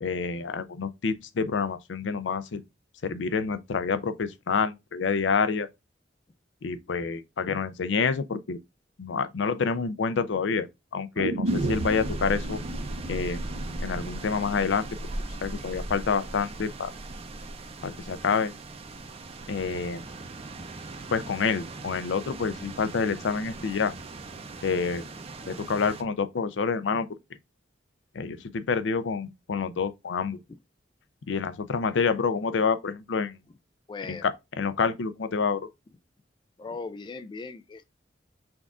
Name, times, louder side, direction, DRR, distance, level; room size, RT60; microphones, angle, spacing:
voice 1, 0.0-2.6 3.0-5.7 6.6-8.6 9.0-10.7 10.9-12.6 13.1-13.4 13.8-14.9 15.4-16.9 17.8-18.5 19.5-20.0 21.1-23.9 24.6-25.0 25.5-27.1 28.1-30.4 31.3-33.4 34.1-34.3 34.6-35.6, left 5 dB, 80° left, 0.5 m, -28 dB
sound 1, 11.2-15.2 15.5-15.6, right 2 dB, 80° right, 0.6 m, -33 dB
sound 2, 11.5-26.0, right 2 dB, 35° right, 0.5 m, -39 dB
voice 2, 33.9-34.3 36.6-37.9, left 4 dB, 25° left, 0.3 m, -39 dB
6.1 x 2.4 x 3.5 m
head